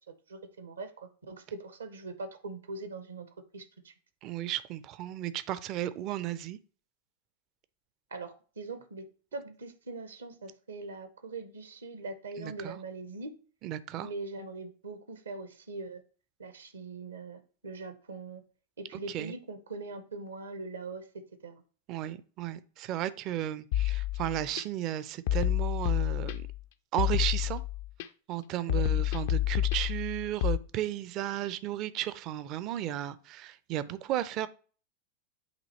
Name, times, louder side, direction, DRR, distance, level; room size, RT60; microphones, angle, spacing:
voice 1, 0.3-3.3 3.5-3.9 8.1-9.0 9.3-13.3 13.9-16.0 16.4-18.4 18.8-21.1 21.4-21.6 28.7-28.9, right 3 dB, 70° right, 0.8 m, -42 dB
voice 2, 4.2-6.6 12.4-12.8 13.6-14.1 19.1-19.3 21.9-26.5 26.9-27.6 28.3-34.5, right 13 dB, 40° right, 0.4 m, -34 dB
sound 1, 23.7-24.6 25.3-26.6 27.0-28.1 28.7-30.6, left 13 dB, 50° left, 0.4 m, -29 dB
8.0 x 2.8 x 4.1 m
figure-of-eight pair, 90°, 0 cm